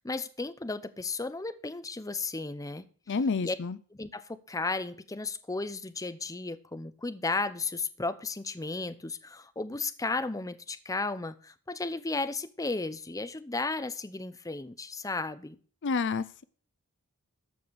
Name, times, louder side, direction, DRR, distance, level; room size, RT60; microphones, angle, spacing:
voice 1, 0.0-2.9 3.4-3.6 3.9-15.6, left 3 dB, 15° left, 0.6 m, -34 dB
voice 2, 3.1-3.8 15.8-16.4, left 4 dB, 55° left, 0.5 m, -29 dB
13.5 x 4.9 x 7.2 m
head